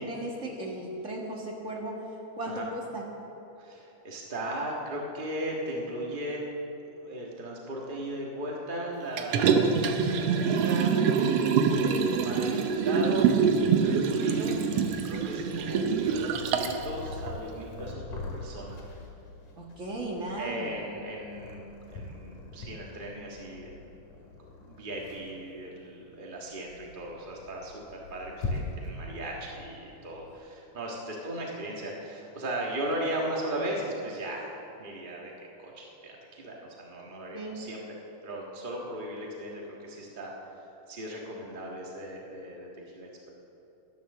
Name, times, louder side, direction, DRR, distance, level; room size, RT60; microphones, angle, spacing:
voice 1, 0.0-2.0 2.3-3.0 19.6-20.7 37.3-37.6, right 1 dB, 35° right, -2 dB, 1.2 m, -36 dB
voice 2, 3.6-6.4 7.0-11.2 11.7-14.5 15.0-18.8 20.4-21.6 21.9-23.8 24.2-24.3 24.6-34.5 34.8-35.3 35.6-37.8 38.2-40.3 40.9-42.7 42.9-43.3, right 1 dB, 55° right, -2 dB, 0.5 m, -37 dB
Liquid, 9.2-16.8 17.3-17.4, right 6 dB, 75° right, 1.5 m, -25 dB
Purr, 11.7-30.4, left 3 dB, 75° left, 3.1 m, -43 dB
12.5 x 11.0 x 6.6 m, 2.9 s
omnidirectional pair, 3.7 m